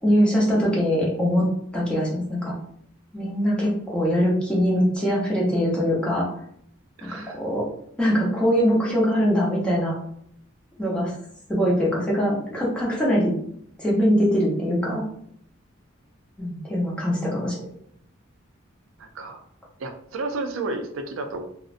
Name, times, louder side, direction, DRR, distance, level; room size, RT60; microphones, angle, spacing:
voice 1, 0.0-1.4 1.7-2.5 3.1-6.3 7.0-7.7 8.0-9.9 10.8-11.2 11.5-13.3 13.8-15.0 16.4-17.7, equal, 5° left, -5 dB, 0.6 m, -22 dB
voice 2, 7.0-7.4 19.0-19.4 19.8-21.5, right 2 dB, 75° right, 5 dB, 0.4 m, -32 dB
2.4 x 2.1 x 2.4 m, 0.69 s
head